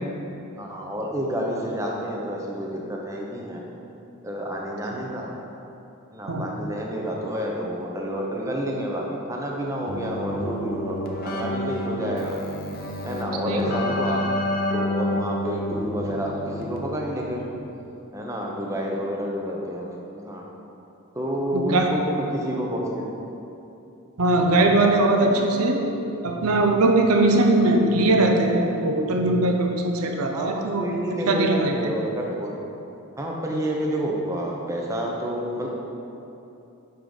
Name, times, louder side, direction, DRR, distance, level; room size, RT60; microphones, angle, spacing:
voice 1, 0.6-3.6 4.2-5.3 6.1-12.4 13.0-14.2 14.7-17.4 18.1-19.9 20.1-20.4 21.1-23.1 25.2-25.4 30.3-32.5 33.2-35.7, equal, 15° right, -2 dB, 0.6 m, -29 dB
Keyboard (musical), 9.9-17.2, left 1 dB, 40° left, 0.5 m, -29 dB
voice 2, 21.5-21.9 24.2-25.8 26.2-30.9 31.3-31.8, right 2 dB, 80° right, 3 dB, 0.6 m, -20 dB
6.8 x 4.7 x 3.8 m, 2.9 s
head